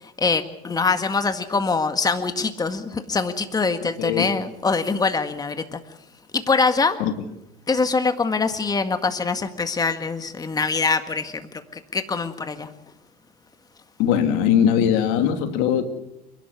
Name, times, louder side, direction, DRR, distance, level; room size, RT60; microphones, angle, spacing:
voice 1, 0.0-5.8 6.3-7.0 7.7-12.7, left 4 dB, 20° left, 9 dB, 1.8 m, -24 dB
voice 2, 4.0-4.3 7.0-7.1 14.0-15.8, left 9 dB, 65° left, 8 dB, 2.6 m, -20 dB
29.5 x 11.5 x 9.8 m, 0.85 s
hypercardioid pair, 80°, 20 cm